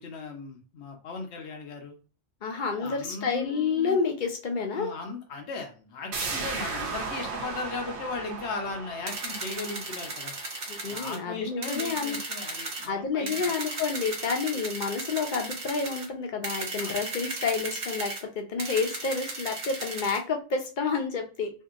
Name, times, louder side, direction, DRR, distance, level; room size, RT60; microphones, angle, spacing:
voice 1, 0.0-2.0 2.8-4.0 4.7-10.3 10.9-13.5 16.8-17.0, left 4 dB, 80° left, 3 dB, 1.0 m, -37 dB
voice 2, 2.4-4.9 10.7-12.2 12.9-21.5, left 5 dB, 50° left, 3 dB, 0.8 m, -29 dB
sound 1, 6.1-11.6 11.9-12.0, right 4 dB, 85° right, 0.9 m, -36 dB
sound 2, 9.1-11.2 11.6-12.9 13.3-16.1 16.4-18.2 18.6-20.2, right 2 dB, 45° right, 0.9 m, -36 dB
2.8 x 2.6 x 2.5 m, 0.35 s
omnidirectional pair, 1.1 m